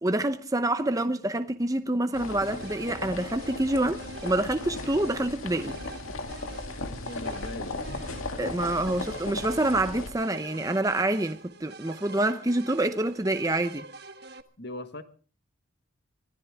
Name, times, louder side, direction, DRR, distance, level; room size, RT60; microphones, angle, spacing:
voice 1, 0.0-5.8 8.4-13.9, right 1 dB, 15° right, 0.7 m, -27 dB
sound 1, 2.1-10.1, left 2 dB, 90° left, 2.2 m, -36 dB
sound 2, 2.4-14.4, right 3 dB, 50° right, 1.3 m, -46 dB
voice 2, 7.1-7.8 14.6-15.0, left 1 dB, 55° left, 1.6 m, -39 dB
25.0 x 16.0 x 3.5 m
head